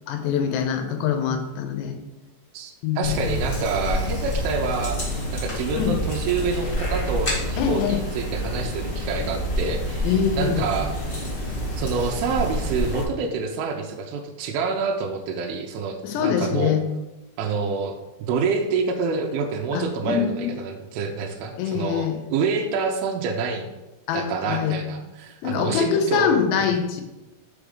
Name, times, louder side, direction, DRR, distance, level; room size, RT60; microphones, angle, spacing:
voice 1, 0.1-2.0 2.8-3.3 5.7-6.0 7.6-8.0 10.0-10.7 16.0-16.8 19.7-20.5 21.6-22.2 24.1-24.8 25.4-27.0, left 8 dB, 80° left, 6 dB, 2.9 m, -24 dB
voice 2, 2.5-5.0 5.3-10.9 11.8-16.7 17.4-18.0 18.3-23.7 24.1-26.3 26.6-26.7, right 4 dB, 85° right, 3 dB, 2.2 m, -27 dB
sound 1, 3.0-13.0, equal, 60° left, 0.5 m, -28 dB
6.0 x 5.1 x 5.0 m, 1.0 s
omnidirectional pair, 5.1 m